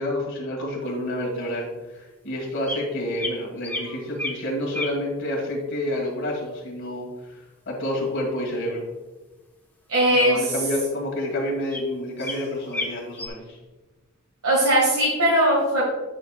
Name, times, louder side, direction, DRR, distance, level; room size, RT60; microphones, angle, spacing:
voice 1, 0.0-1.7 1.9-8.8 10.1-13.6, left 1 dB, 55° left, -1 dB, 2.0 m, -29 dB
sound 1, 1.2-1.3 2.6-2.8 3.1-3.4 3.6-4.4 4.7-5.0 9.9-10.1 10.4-10.5 11.2-11.3 11.7-11.8 12.2-12.4 12.7-13.3, left 2 dB, 10° left, 0.9 m, -31 dB
voice 2, 9.9-10.5 14.4-15.9, right 1 dB, 75° right, -6 dB, 2.1 m, -19 dB
9.3 x 6.6 x 2.4 m, 1.2 s
head